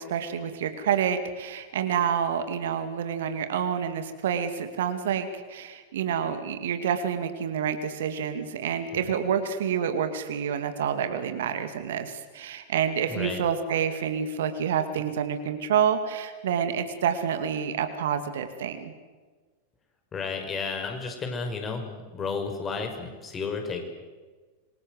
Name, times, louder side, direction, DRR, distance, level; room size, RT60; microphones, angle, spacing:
voice 1, 0.0-18.9, right 8 dB, 60° right, 9 dB, 2.5 m, -28 dB
voice 2, 13.1-13.4 20.1-23.8, left 4 dB, 20° left, 5 dB, 5.5 m, -32 dB
27.0 x 23.5 x 7.9 m, 1.4 s
figure-of-eight pair, 90°, 0 cm